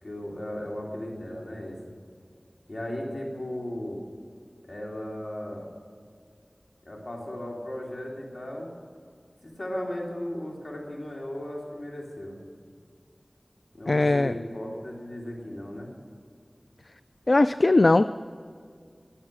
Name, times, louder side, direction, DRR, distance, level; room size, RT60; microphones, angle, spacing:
voice 1, 0.0-1.8 2.7-4.0 4.7-5.7 6.8-8.7 9.4-12.4 13.7-15.9, left 1 dB, 85° left, -2 dB, 3.2 m, -36 dB
voice 2, 13.9-14.3 17.3-18.1, left 2 dB, 65° left, 12 dB, 0.3 m, -19 dB
22.5 x 7.4 x 6.3 m, 2.1 s
wide cardioid pair, 50°, 0 cm